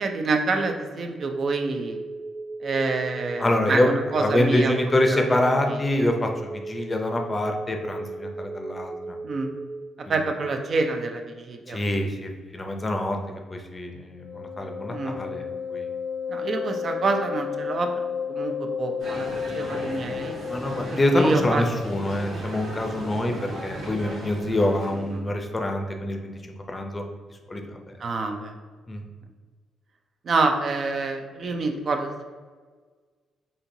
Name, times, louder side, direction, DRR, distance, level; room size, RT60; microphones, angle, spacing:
voice 1, 0.0-2.0 2.6-4.7 5.1-5.4 9.2-9.5 10.1-11.8 14.9-15.2 16.3-17.9 18.3-20.3 20.9-21.6 25.1-25.3 28.0-28.5 30.2-32.2, right 3 dB, 50° right, 4 dB, 0.5 m, -27 dB
sound 1, 1.2-9.8, right 3 dB, 20° right, 1.0 m, -36 dB
voice 2, 3.4-9.2 10.1-10.2 11.7-13.2 13.5-15.4 15.7-15.9 20.5-27.0 27.5-27.8 28.9-29.0, left 1 dB, 25° left, 3 dB, 0.5 m, -25 dB
Wind instrument woodwind instrument, 14.1-21.1, left 7 dB, 75° left, 0.7 m, -32 dB
sound 2, 19.0-25.2, right 1 dB, 75° right, 1.3 m, -36 dB
4.3 x 2.7 x 2.7 m, 1.5 s
cardioid pair, 90°, 0 cm